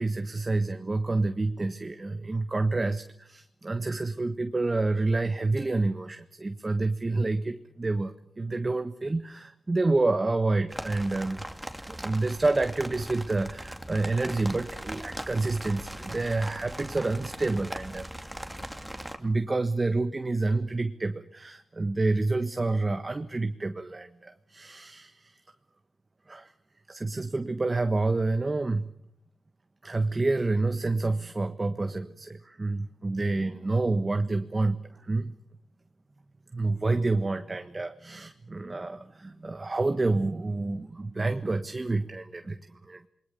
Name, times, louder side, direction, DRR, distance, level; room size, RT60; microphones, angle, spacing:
voice 1, 0.0-11.4 11.9-18.1 18.6-18.7 19.2-25.4 26.3-26.5 26.9-28.9 29.8-35.3 36.5-43.1, right 3 dB, 30° right, 8 dB, 1.4 m, -28 dB
sound 1, 10.7-19.2, right 1 dB, 5° right, 2.6 m, -40 dB
28.0 x 21.0 x 6.9 m, 0.69 s
cardioid pair, 65°, 0 cm